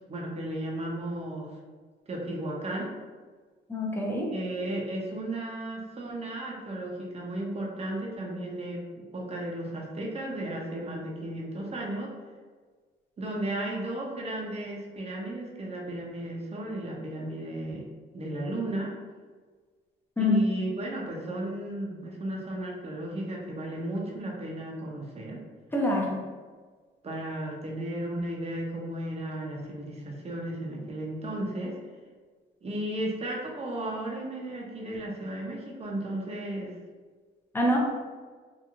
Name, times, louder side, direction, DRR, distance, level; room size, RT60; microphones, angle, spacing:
voice 1, 0.1-1.6 2.1-2.9 4.3-12.1 13.2-17.9 18.1-18.9 20.2-25.4 27.0-31.8 32.6-36.8, right 1 dB, 30° right, -2 dB, 0.7 m, -34 dB
voice 2, 3.7-4.3 20.2-20.4 25.7-26.2 37.5-37.8, left 1 dB, 10° left, -2 dB, 0.7 m, -25 dB
2.9 x 2.5 x 2.5 m, 1.5 s
cardioid pair, 90°, 20 cm